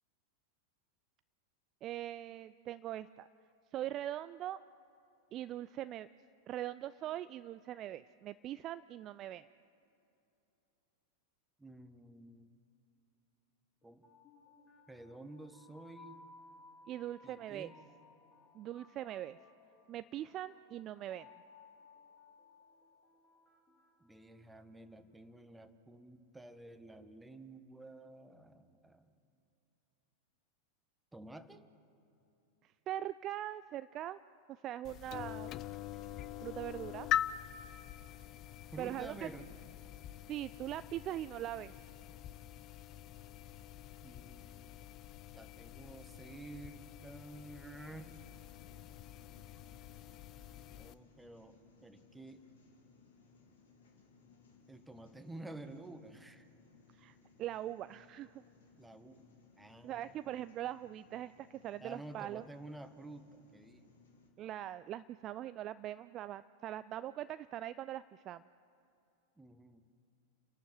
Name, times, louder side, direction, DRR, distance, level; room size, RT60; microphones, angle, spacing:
voice 1, 1.8-3.3 3.7-4.6 5.3-6.1 6.5-9.4 16.9-17.7 18.5-19.4 19.9-21.3 32.9-34.2 34.5-35.5 36.4-37.1 38.8-39.3 40.3-41.9 57.0-58.4 59.8-62.4 64.4-68.4, right 12 dB, 35° right, 14 dB, 0.4 m, -41 dB
voice 2, 11.6-12.5 13.8-14.0 14.9-16.2 17.2-17.7 24.0-29.1 31.1-31.7 38.7-39.6 44.0-44.8 45.3-48.1 50.7-52.5 54.7-56.5 58.8-59.3 59.6-60.2 61.8-63.9 69.4-69.8, right 2 dB, 5° right, 9 dB, 1.3 m, -51 dB
sound 1, 13.8-24.9, left 3 dB, 20° left, 2.7 m, -61 dB
sound 2, 34.8-50.9, left 11 dB, 35° left, 0.6 m, -44 dB
sound 3, 47.7-64.3, left 5 dB, 60° left, 3.0 m, -64 dB
30.0 x 12.0 x 7.8 m, 2.8 s
figure-of-eight pair, 90°, 0 cm